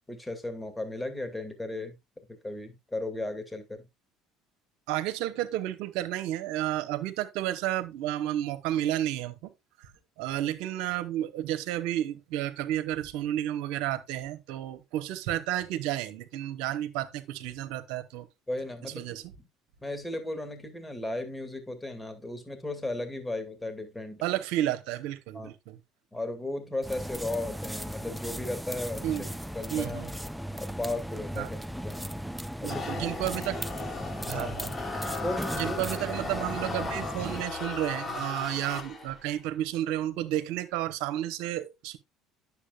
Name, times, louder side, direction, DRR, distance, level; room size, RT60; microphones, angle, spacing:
voice 1, 0.1-2.0 2.3-3.9 18.5-19.1 19.4-19.5 19.8-24.2 25.3-25.5 26.1-29.2 29.5-30.1 30.6-31.6 31.8-32.1 32.6-33.1 34.3-34.5 35.2-35.8, left 2 dB, 15° left, 2.1 m, -35 dB
voice 2, 4.9-9.5 9.8-9.9 10.2-18.3 18.8-19.2 24.2-25.8 29.0-29.3 29.7-30.1 31.4-31.5 32.6-33.9 34.3-34.7 35.5-42.0, right 13 dB, 70° right, 1.0 m, -31 dB
sound 1, 26.8-37.4, equal, 5° right, 0.5 m, -37 dB
sound 2, 32.7-39.3, left 3 dB, 30° left, 2.4 m, -36 dB
9.9 x 7.3 x 2.4 m
hypercardioid pair, 70°, 0 cm